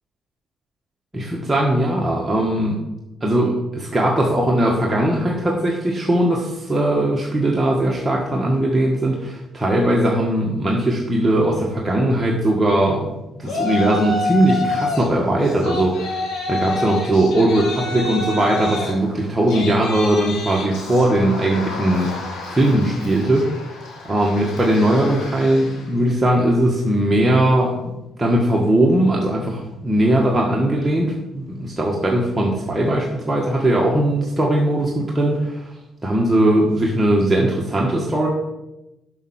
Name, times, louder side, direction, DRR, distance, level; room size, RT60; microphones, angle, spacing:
voice 1, 1.1-2.8 3.2-16.2 16.5-22.1 22.5-23.5 24.1-27.9 28.2-35.6 36.0-38.3, right 1 dB, 15° right, -2 dB, 1.6 m, -19 dB
Yell, 13.4-15.1 15.4-25.9, left 3 dB, 80° left, 2.7 m, -28 dB
7.2 x 5.6 x 7.3 m, 0.95 s
cardioid pair, 90°, 0 cm